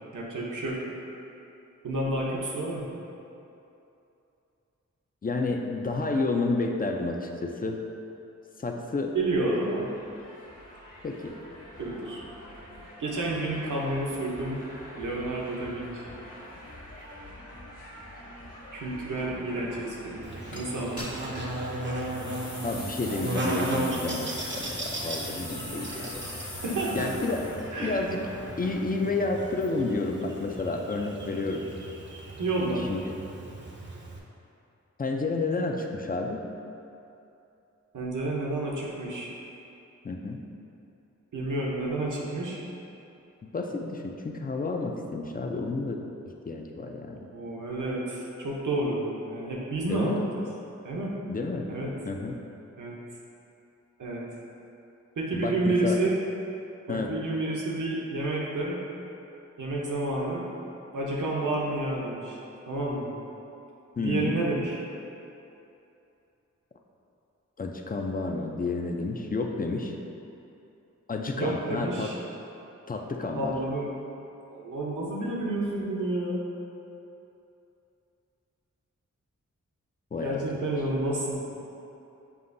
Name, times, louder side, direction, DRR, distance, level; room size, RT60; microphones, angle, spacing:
voice 1, 0.1-0.8 1.8-2.9 9.1-9.9 11.8-12.2 13.0-14.6 14.9-16.2 18.7-20.3 20.5-21.1 26.6-27.0 27.7-28.0 32.4-32.9 37.9-39.3 41.3-42.6 47.1-50.3 50.8-51.2 51.7-51.9 52.7-53.0 54.0-54.3 55.2-56.2 56.9-58.8 59.6-60.5 60.9-62.4 62.7-63.1 64.0-64.8 71.3-72.2 73.3-73.9 74.5-76.4 80.2-81.4, right 2 dB, 80° right, -4 dB, 0.8 m, -30 dB
voice 2, 5.2-7.8 8.6-9.2 11.0-11.4 22.6-26.2 26.9-28.3 28.6-31.7 32.6-33.0 35.0-36.4 40.0-40.5 43.4-46.0 46.5-47.2 49.9-50.3 51.3-51.7 52.1-52.4 55.3-56.0 56.9-57.2 64.0-64.4 67.6-70.0 71.1-72.2 72.9-73.5 80.1-80.7, left 3 dB, 30° left, 2 dB, 0.4 m, -30 dB
sound 1, 9.6-28.7, equal, 75° left, 1.3 m, -46 dB
Buzz, 20.2-34.2, right 1 dB, 40° right, 0.6 m, -36 dB
sound 2, 20.5-20.6 21.0-21.5 22.0-27.6, left 1 dB, 50° left, 1.4 m, -41 dB
6.9 x 2.5 x 2.6 m, 2.8 s
cardioid pair, 45°, 30 cm